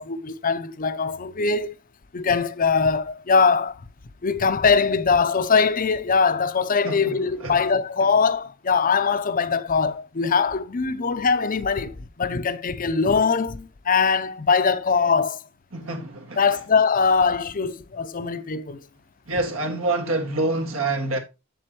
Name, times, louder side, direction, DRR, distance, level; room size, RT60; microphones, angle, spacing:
voice 1, 0.0-1.7 2.1-3.8 4.2-15.4 16.4-18.8, left 5 dB, 40° left, 0.6 m, -22 dB
voice 2, 6.8-7.2 7.4-7.6 15.7-16.4 19.3-21.2, right 2 dB, 80° right, 1.9 m, -26 dB
7.8 x 7.6 x 3.0 m
head